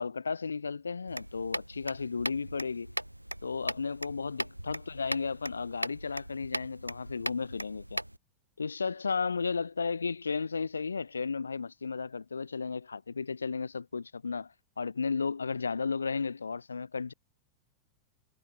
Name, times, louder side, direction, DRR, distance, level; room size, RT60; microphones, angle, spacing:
voice 1, 0.0-2.9 3.4-8.0 8.6-17.1, left 5 dB, 75° left, 2.3 m, -34 dB
sound 1, 1.1-8.2, right 1 dB, 90° right, 2.0 m, -39 dB
figure-of-eight pair, 90°, 0 cm